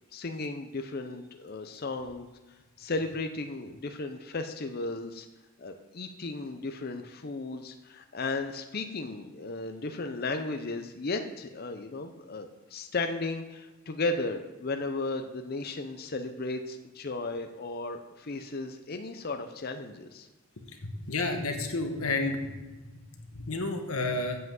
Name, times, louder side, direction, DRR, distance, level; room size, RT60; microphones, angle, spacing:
voice 1, 0.0-2.3 2.8-5.3 5.6-20.3, left 3 dB, 45° left, 6 dB, 0.6 m, -35 dB
voice 2, 21.1-22.5 23.3-24.4, left 2 dB, 85° left, 4 dB, 1.3 m, -30 dB
7.8 x 5.7 x 7.7 m, 1.1 s
head